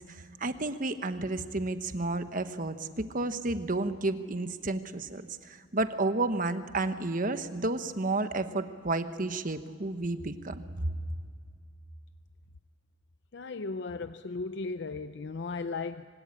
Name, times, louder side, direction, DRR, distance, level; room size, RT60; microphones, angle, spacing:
voice 1, 0.0-10.9, right 2 dB, 45° right, 10 dB, 1.1 m, -31 dB
voice 2, 13.3-16.1, left 3 dB, 60° left, 11 dB, 0.6 m, -36 dB
25.0 x 18.5 x 8.7 m, 2.1 s
head